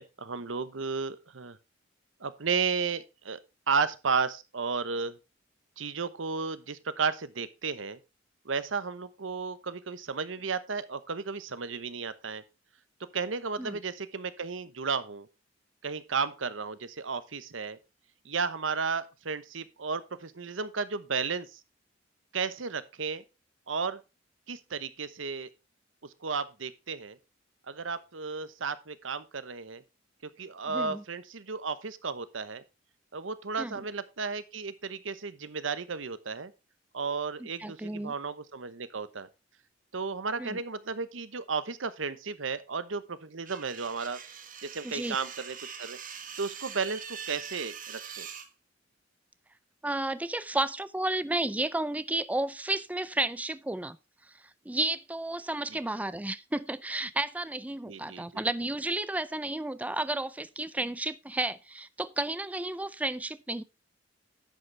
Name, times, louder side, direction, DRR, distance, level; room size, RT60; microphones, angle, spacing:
voice 1, 0.0-1.6 2.2-3.4 3.7-5.2 5.8-8.0 8.4-12.4 13.1-15.3 15.8-17.8 18.2-21.6 22.3-23.2 23.7-24.0 24.5-25.5 26.2-27.2 27.7-29.8 30.4-32.6 33.1-36.5 36.9-39.3 39.9-44.2 44.6-46.0 46.4-48.3 57.9-58.4, right 5 dB, 85° right, 1.0 m, -33 dB
voice 2, 30.7-31.0 33.6-33.8 37.4-38.1 40.4-40.6 44.8-45.2 49.8-54.0 54.2-63.6, right 2 dB, 10° right, 0.4 m, -32 dB
sound 1, 43.5-48.5, right 7 dB, 45° right, 1.4 m, -43 dB
10.5 x 8.1 x 3.3 m
head